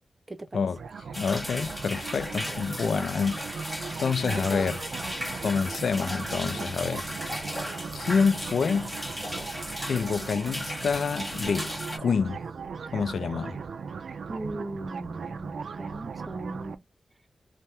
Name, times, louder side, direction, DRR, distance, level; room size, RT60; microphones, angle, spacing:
voice 1, 0.3-0.7 2.8-3.2 4.2-4.7 14.3-16.9, right 2 dB, 25° right, 0.6 m, -37 dB
sound 1, 0.7-16.8, right 5 dB, 90° right, 0.4 m, -38 dB
sound 2, 1.1-12.0, left 1 dB, 10° left, 1.5 m, -36 dB
voice 2, 1.2-4.8 5.4-7.1 7.9-8.9 9.9-11.7 12.0-12.4 12.9-13.6, left 5 dB, 90° left, 0.3 m, -27 dB
3.4 x 2.1 x 2.7 m
wide cardioid pair, 110°, 0 cm